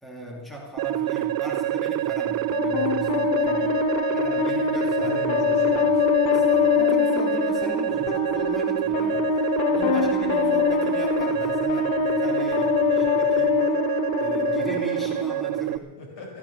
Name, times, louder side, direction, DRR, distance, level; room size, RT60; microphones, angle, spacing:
voice 1, 0.0-3.8 4.1-5.2 5.7-6.0 6.3-9.5 9.7-13.6 14.2-16.0, equal, ahead, -2 dB, 2.5 m, -38 dB
sound 1, 0.8-15.8, right 13 dB, 50° right, 0.5 m, -26 dB
sound 2, 2.5-15.5, left 14 dB, 85° left, 0.8 m, -25 dB
voice 2, 5.0-6.0 12.5-13.2 16.0-16.4, left 3 dB, 65° left, 0 dB, 5.2 m, -38 dB
14.5 x 13.0 x 6.7 m, 1.3 s
cardioid pair, 155°, 46 cm